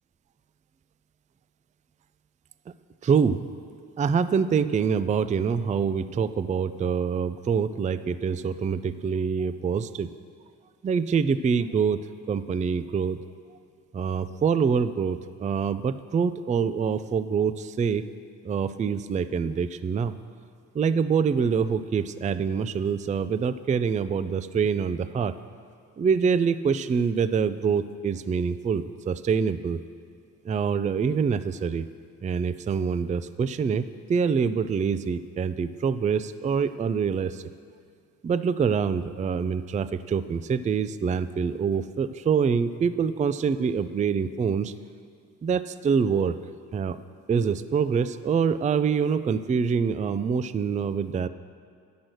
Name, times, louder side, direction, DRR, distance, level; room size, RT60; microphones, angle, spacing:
voice 1, 3.0-3.5 4.0-10.1 10.8-13.2 13.9-18.0 18.4-20.1 20.7-25.4 26.0-29.8 30.4-31.8 32.2-37.4 38.2-44.7 45.4-46.4 46.7-47.0 47.3-51.3, right 6 dB, 20° right, 13 dB, 0.3 m, -25 dB
10.5 x 6.2 x 6.2 m, 2.2 s
supercardioid pair, 50°, 37 cm